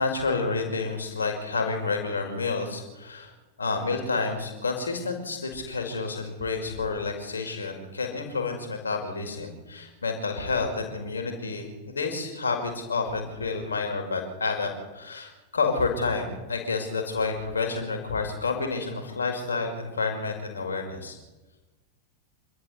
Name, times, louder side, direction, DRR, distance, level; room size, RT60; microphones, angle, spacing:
voice 1, 0.0-3.3 3.6-21.2, left 4 dB, 75° left, 3 dB, 5.5 m, -29 dB
27.5 x 13.5 x 8.3 m, 1.2 s
figure-of-eight pair, 90°, 0 cm